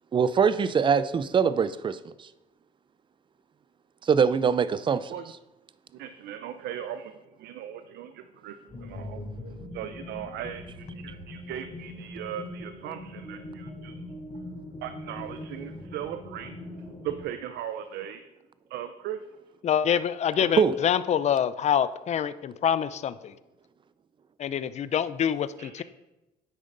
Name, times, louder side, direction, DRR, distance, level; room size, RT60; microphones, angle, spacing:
voice 1, 0.1-2.1 4.0-5.1 20.6-20.7, right 6 dB, 30° right, 15 dB, 0.5 m, -23 dB
voice 2, 5.9-9.2 9.7-14.0 14.8-16.5 17.0-18.2 18.7-19.2 20.3-20.5 25.6-25.8, right 10 dB, 80° right, 9 dB, 0.6 m, -38 dB
sound 1, 8.7-17.2, left 1 dB, 25° left, 3.2 m, -41 dB
voice 3, 19.6-23.3 24.4-25.8, left 8 dB, 40° left, 15 dB, 0.5 m, -26 dB
9.7 x 8.7 x 3.9 m, 1.0 s
cardioid pair, 110°, 17 cm